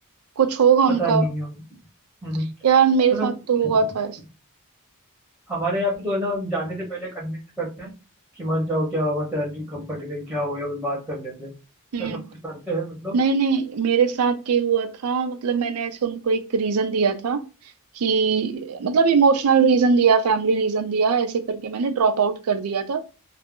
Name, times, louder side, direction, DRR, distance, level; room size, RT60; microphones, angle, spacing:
voice 1, 0.4-1.3 2.6-4.2 11.9-12.3 13.1-17.4 18.0-23.1, right 6 dB, 80° right, 0.5 m, -21 dB
voice 2, 1.0-1.6 2.2-2.5 3.1-3.3 3.6-3.8 5.5-7.9 8.3-11.5 12.0-13.2, equal, 5° right, 0.8 m, -27 dB
2.3 x 2.0 x 3.6 m
head